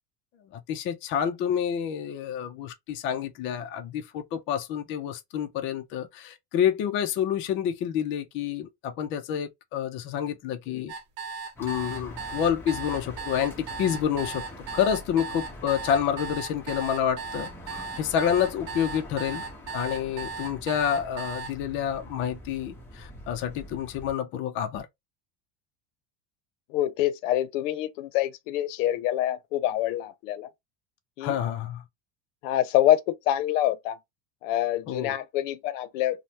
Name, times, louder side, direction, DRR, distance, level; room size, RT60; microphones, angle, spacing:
voice 1, 0.7-10.9 11.6-14.4 14.7-19.4 19.7-24.9 31.2-31.8 34.9-35.2, left 9 dB, 35° left, 0.4 m, -28 dB
sound 1, 10.9-21.5, right 5 dB, 60° right, 0.8 m, -36 dB
sound 2, 11.6-24.1, left 1 dB, 5° left, 0.7 m, -44 dB
voice 2, 26.7-30.5 31.2-31.4 32.4-34.0 34.4-36.2, left 13 dB, 90° left, 0.6 m, -26 dB
3.2 x 2.1 x 2.7 m
cardioid pair, 160°, 36 cm